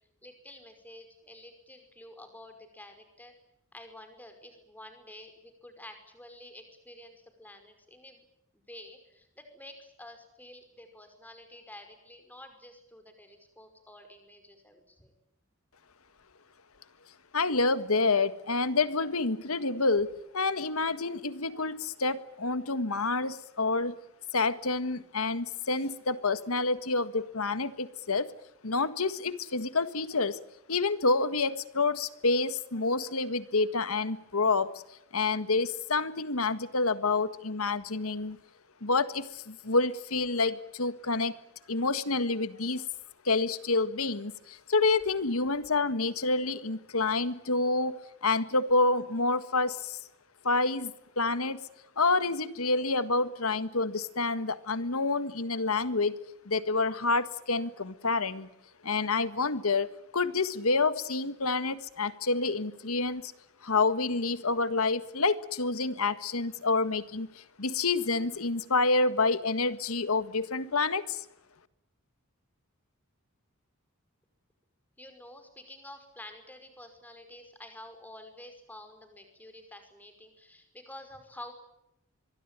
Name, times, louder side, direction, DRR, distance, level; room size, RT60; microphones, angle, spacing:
voice 1, 0.2-3.3 3.7-8.3 8.5-15.1 75.0-81.5, left 1 dB, 10° left, 7 dB, 5.4 m, -49 dB
voice 2, 17.3-24.0 24.3-28.3 28.6-30.4 30.7-34.8 35.1-38.4 38.8-41.4 41.7-42.9 43.3-50.0 50.4-51.6 52.0-56.2 56.5-58.5 58.8-63.3 63.6-71.3, left 3 dB, 80° left, 13 dB, 1.7 m, -28 dB
24.5 x 23.0 x 8.9 m, 0.80 s
head